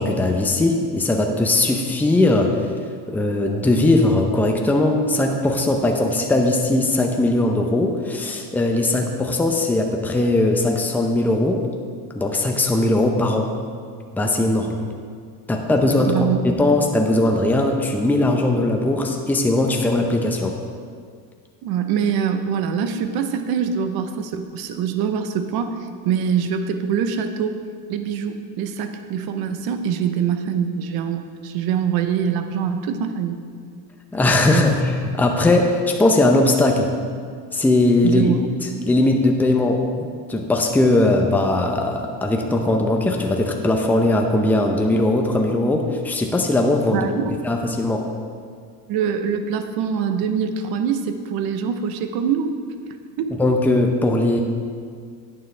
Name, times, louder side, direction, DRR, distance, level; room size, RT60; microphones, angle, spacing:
voice 1, 0.0-2.6 3.1-11.6 12.1-13.5 14.1-14.8 15.5-20.6 34.1-36.9 37.5-38.2 38.8-47.1 47.4-48.1 53.3-54.4, left 2 dB, 5° left, 2 dB, 0.7 m, -19 dB
voice 2, 15.8-16.4 21.6-27.5 27.9-33.4 34.5-34.6 38.0-38.4 46.9-47.3 48.9-52.5 53.2-53.3, right 7 dB, 65° right, 8 dB, 0.9 m, -24 dB
10.5 x 9.2 x 3.3 m, 2.1 s
cardioid pair, 135°, 39 cm